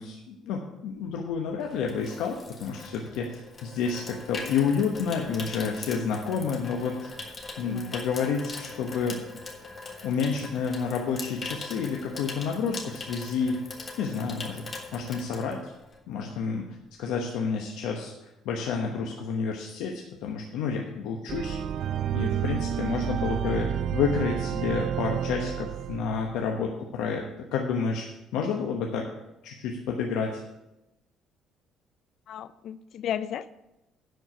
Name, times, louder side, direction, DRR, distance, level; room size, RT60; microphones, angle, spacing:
voice 1, 0.0-7.1 7.6-9.2 10.0-13.6 14.0-14.6 14.9-15.7 16.1-16.7 17.0-18.1 18.4-21.6 22.1-27.2 27.5-28.1 28.3-29.1 29.4-30.4, left 6 dB, 90° left, 1 dB, 1.0 m, -29 dB
Water tap faucet / Sink (filling or washing), 1.1-16.1 16.4-16.7, left 3 dB, 30° left, 1.5 m, -41 dB
voice 2, 7.6-8.0 23.4-23.7 32.3-33.5, left 9 dB, 60° left, 15 dB, 0.3 m, -35 dB
sound 1, 21.3-26.4, right 9 dB, 60° right, 0.4 m, -30 dB
10.5 x 4.7 x 7.9 m, 0.94 s
cardioid pair, 130°, 0 cm